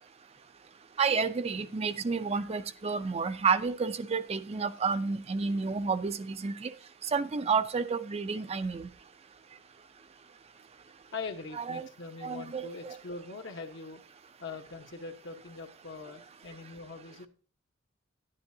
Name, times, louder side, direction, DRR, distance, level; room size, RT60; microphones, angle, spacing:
voice 1, 1.0-6.7 7.1-8.9 11.6-11.9 12.2-13.0, right 5 dB, 30° right, 0.5 m, -30 dB
voice 2, 11.1-14.0 14.4-17.3, left 4 dB, 65° left, 1.2 m, -42 dB
10.5 x 10.5 x 2.7 m
head